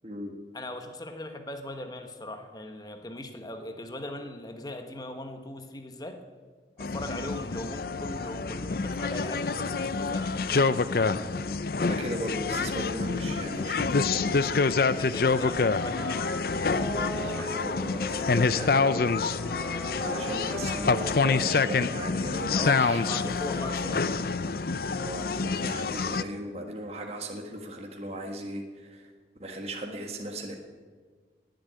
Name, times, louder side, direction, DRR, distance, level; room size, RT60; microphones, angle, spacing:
voice 1, 0.5-6.2 6.8-11.5 14.8-16.2 16.7-17.6 22.5-24.1, left 1 dB, 20° left, 6 dB, 1.2 m, -39 dB
sound 1, 6.8-26.2, left 4 dB, 55° left, 0.5 m, -27 dB
voice 2, 11.8-14.7 17.1-19.0 20.0-23.3 23.8-24.0 25.0-29.1 29.4-30.6, right 1 dB, 35° right, 2 dB, 1.6 m, -37 dB
sound 2, 15.9-21.4, right 1 dB, ahead, 1.4 m, -39 dB
19.0 x 7.9 x 9.4 m, 1.5 s
head